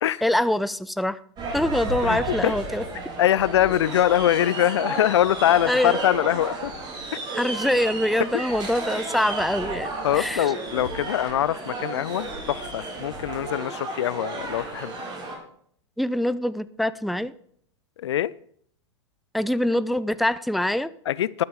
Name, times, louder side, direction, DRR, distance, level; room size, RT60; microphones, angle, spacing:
voice 1, 0.2-1.2 1.5-2.8 5.6-6.0 7.3-10.5 16.0-17.3 19.3-20.9, left 1 dB, ahead, 0.4 m, -24 dB
sound 1, 1.4-15.3, right 2 dB, 30° right, 4.5 m, -33 dB
voice 2, 2.0-2.5 3.2-6.7 7.1-7.2 8.3-8.4 10.0-14.9 18.0-18.3 21.1-21.4, left 11 dB, 70° left, 0.5 m, -23 dB
12.5 x 9.6 x 4.9 m
hypercardioid pair, 100°, 15 cm